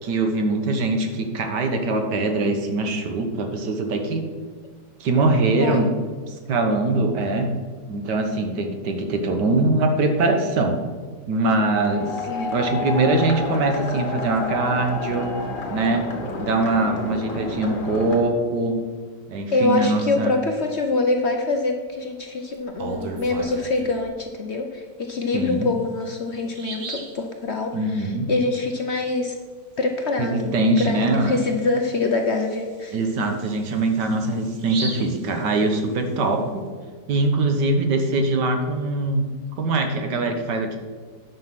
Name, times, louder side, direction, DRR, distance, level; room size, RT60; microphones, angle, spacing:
voice 1, 0.0-4.3 5.0-5.9 6.3-7.5 7.9-10.7 11.3-12.3 12.5-15.3 15.7-16.1 16.4-18.8 19.3-20.3 25.3-25.7 27.7-28.3 30.2-31.4 32.9-36.6 37.1-39.2 39.6-40.8, right 2 dB, 80° right, 5 dB, 1.8 m, -22 dB
voice 2, 5.6-5.9 12.2-12.6 19.5-29.4 29.8-33.0, left 3 dB, 55° left, 3 dB, 0.8 m, -25 dB
sound 1, 11.8-18.2, left 3 dB, 80° left, 2.1 m, -30 dB
Bird vocalization bird call bird song, 22.6-24.0 25.5-25.6 26.0-26.1 26.5-27.2 30.7-30.8 31.2-31.3 31.8-36.1, right 3 dB, 50° right, 1.6 m, -36 dB
9.8 x 5.8 x 6.0 m, 1.5 s
omnidirectional pair, 1.8 m